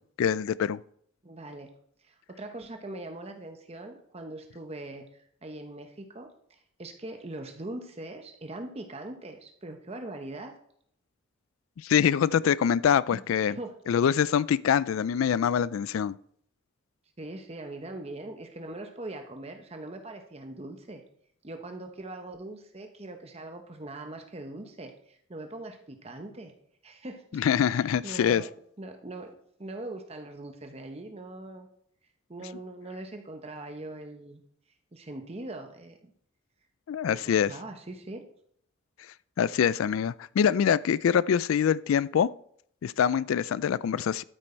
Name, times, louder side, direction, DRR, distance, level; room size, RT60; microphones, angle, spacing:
voice 1, 0.2-0.8 11.8-13.6 13.9-16.1 27.3-28.4 36.9-37.5 39.4-42.3 42.8-44.2, left 8 dB, 85° left, 19 dB, 0.3 m, -24 dB
voice 2, 1.2-1.7 2.0-10.5 13.1-13.2 13.5-13.7 17.2-21.0 21.4-26.5 26.8-27.4 27.7-28.5 28.8-29.3 29.6-31.7 32.3-34.4 34.9-36.1 37.1-38.3, right 2 dB, 30° right, 5 dB, 1.0 m, -41 dB
12.5 x 7.8 x 4.4 m, 0.67 s
head